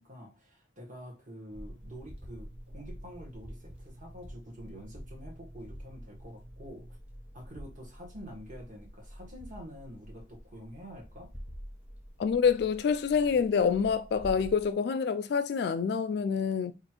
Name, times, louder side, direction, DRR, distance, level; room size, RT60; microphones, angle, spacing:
voice 1, 0.0-7.0 7.3-11.3, equal, 45° right, 1.4 m, -47 dB
sound 1, 1.5-14.7, equal, 10° right, 1.0 m, -47 dB
voice 2, 12.2-16.7, left 6 dB, 60° left, 0.3 m, -27 dB
3.2 x 2.4 x 4.4 m
head